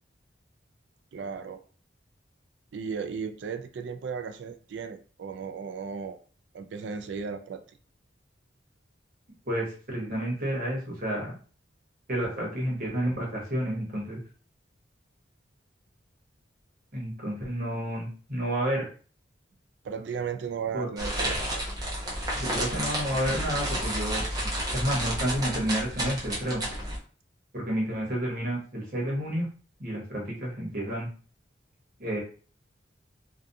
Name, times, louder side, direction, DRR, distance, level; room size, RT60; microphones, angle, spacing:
voice 1, 1.1-1.6 2.7-6.2 6.5-7.6 19.8-21.6, right 6 dB, 70° right, 9 dB, 0.3 m, -35 dB
voice 2, 9.5-11.4 12.1-14.2 16.9-18.9 20.7-20.9 22.3-26.6 27.5-29.5 29.8-31.1 32.0-32.2, equal, 45° right, -3 dB, 1.0 m, -30 dB
sound 1, 21.0-27.0, right 1 dB, 20° right, 0.7 m, -31 dB
2.6 x 2.3 x 2.3 m, 0.39 s
head